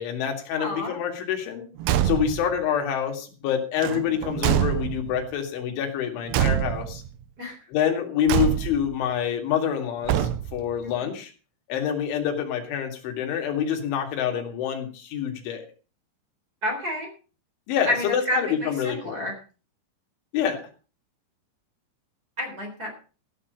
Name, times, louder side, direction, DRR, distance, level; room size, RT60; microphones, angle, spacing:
voice 1, 0.0-1.7 2.0-7.0 7.7-11.3 11.7-15.6 17.7-19.3 20.3-20.6, left 8 dB, 90° left, 4 dB, 4.6 m, -27 dB
voice 2, 0.6-1.0 7.4-7.6 10.8-11.1 16.6-17.1 17.9-19.4 22.4-22.9, left 1 dB, 20° right, 1 dB, 3.9 m, -30 dB
Car / Truck / Slam, 1.8-2.5 3.8-5.2 6.3-7.1 8.3-9.0 10.0-10.7, right 12 dB, 80° right, 2.8 m, -25 dB
14.0 x 10.0 x 5.2 m, 0.36 s
omnidirectional pair, 5.3 m